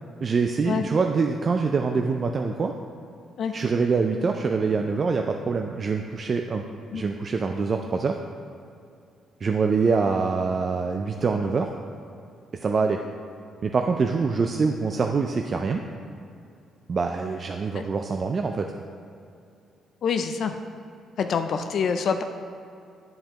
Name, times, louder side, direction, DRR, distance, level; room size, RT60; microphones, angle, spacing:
voice 1, 0.2-2.7 3.5-6.6 6.9-8.2 9.4-11.7 12.6-13.0 13.6-15.8 16.9-18.7, right 4 dB, 45° right, 4 dB, 0.4 m, -24 dB
voice 2, 20.0-20.6 21.2-22.2, left 6 dB, 60° left, 7 dB, 0.4 m, -26 dB
10.0 x 5.3 x 2.9 m, 2.5 s
cardioid pair, 90°, 0 cm